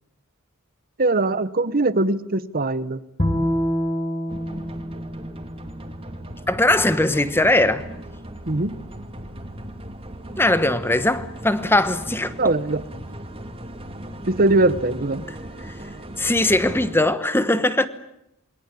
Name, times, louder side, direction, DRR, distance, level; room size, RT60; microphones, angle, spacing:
voice 1, 1.0-3.0 8.5-8.8 12.4-12.8 14.2-15.3, right 2 dB, 40° right, 1.1 m, -21 dB
Bowed string instrument, 3.2-6.5, equal, 30° left, 3.7 m, -27 dB
sound 1, 4.3-16.9, right 1 dB, 25° right, 2.7 m, -37 dB
voice 2, 6.5-7.8 10.4-12.3 15.6-15.7 16.2-17.9, left 1 dB, 10° left, 1.1 m, -20 dB
28.0 x 22.5 x 8.6 m
head